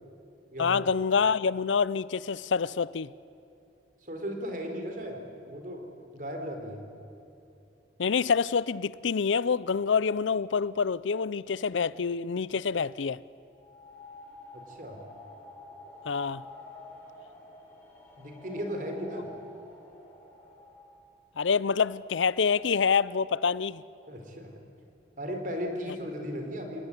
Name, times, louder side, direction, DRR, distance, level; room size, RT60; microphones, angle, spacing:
voice 1, 0.6-3.1 8.0-13.2 16.1-16.4 21.4-23.8, left 5 dB, 90° left, 0.6 m, -26 dB
voice 2, 4.0-5.2 5.5-5.9 6.1-6.8 14.5-15.0 18.2-19.3 24.1-24.5 25.2-26.8, equal, 45° right, 4.0 m, -36 dB
sound 1, 13.5-21.2, left 2 dB, 10° left, 4.8 m, -49 dB
28.5 x 18.5 x 10.0 m
head